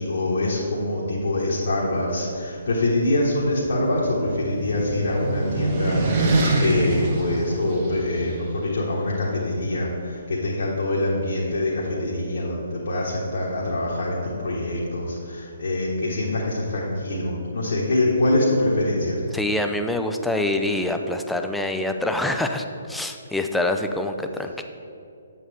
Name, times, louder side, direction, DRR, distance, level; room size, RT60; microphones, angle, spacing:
voice 1, 0.0-19.2, left 1 dB, 60° left, -5 dB, 1.4 m, -24 dB
sound 1, 3.1-8.3, right 2 dB, 40° right, 1.4 m, -25 dB
voice 2, 19.3-24.6, left 1 dB, ahead, 5 dB, 0.4 m, -25 dB
8.1 x 7.3 x 3.5 m, 2.6 s
figure-of-eight pair, 135°, 0 cm